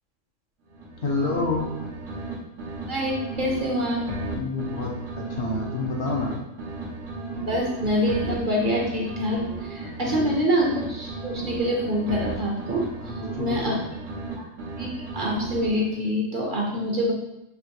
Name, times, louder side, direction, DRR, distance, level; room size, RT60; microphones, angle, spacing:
sound 1, 0.7-2.3 2.6-6.3 6.6-10.3 10.6-14.3 14.6-16.0, right 3 dB, 85° right, 1.2 m, -34 dB
voice 1, 1.0-1.7 4.3-6.4 10.1-10.4 13.0-13.8, left 3 dB, 60° left, -1 dB, 0.8 m, -29 dB
voice 2, 2.9-4.0 7.5-12.9 13.4-13.7 14.4-14.5 14.8-17.1, equal, 50° right, -1 dB, 0.7 m, -26 dB
4.5 x 2.9 x 2.8 m, 0.87 s
omnidirectional pair, 1.2 m